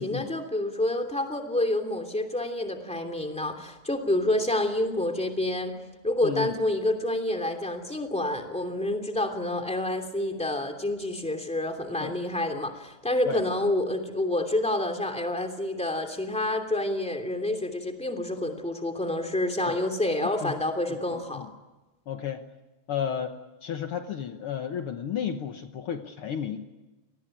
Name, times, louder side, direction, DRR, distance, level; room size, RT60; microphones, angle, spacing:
voice 1, 0.0-5.8 6.0-21.5, left 1 dB, ahead, 4 dB, 2.1 m, -28 dB
voice 2, 6.2-6.6 12.0-12.1 13.2-13.5 19.7-19.8 20.2-20.6 20.9-21.5 22.1-22.4 22.9-26.6, left 8 dB, 85° left, 6 dB, 1.2 m, -33 dB
27.5 x 19.5 x 9.0 m, 1.1 s
omnidirectional pair, 4.2 m